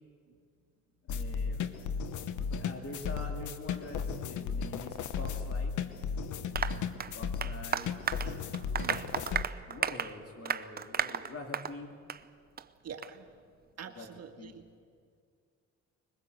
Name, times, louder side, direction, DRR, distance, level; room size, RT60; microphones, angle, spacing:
sound 1, 1.1-9.4, left 6 dB, 75° left, 1.1 m, -35 dB
voice 1, 1.1-1.9 2.5-5.7 7.0-7.9 9.2-12.0 13.9-14.1 14.4-14.5, left 2 dB, 50° left, 3 dB, 2.7 m, -45 dB
Applause, 6.6-11.8 12.1-12.2 12.6-12.7 13.0-13.1, right 7 dB, 30° right, 0.7 m, -34 dB
voice 2, 8.7-9.3 12.8-13.3 13.8-14.6, right 7 dB, 55° right, 4 dB, 2.1 m, -46 dB
21.5 x 20.5 x 7.9 m, 2.2 s
cardioid pair, 90°, 30 cm